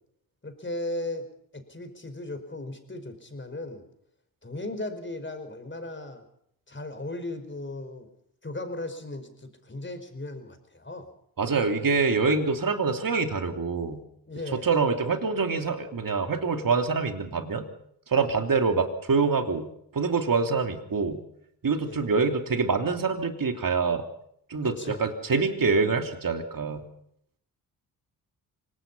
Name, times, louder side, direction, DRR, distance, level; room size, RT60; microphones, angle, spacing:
voice 1, 0.4-1.3 1.5-3.8 4.4-6.2 6.7-8.1 8.4-11.1 14.3-14.7 21.8-22.0 24.6-25.0, left 2 dB, 25° left, 8 dB, 5.1 m, -36 dB
voice 2, 11.4-14.0 14.6-17.7 18.1-19.7 19.9-21.2 21.6-24.0 24.5-26.8, right 4 dB, 45° right, 6 dB, 3.2 m, -25 dB
25.5 x 19.0 x 5.7 m, 0.71 s
hypercardioid pair, 45°, 47 cm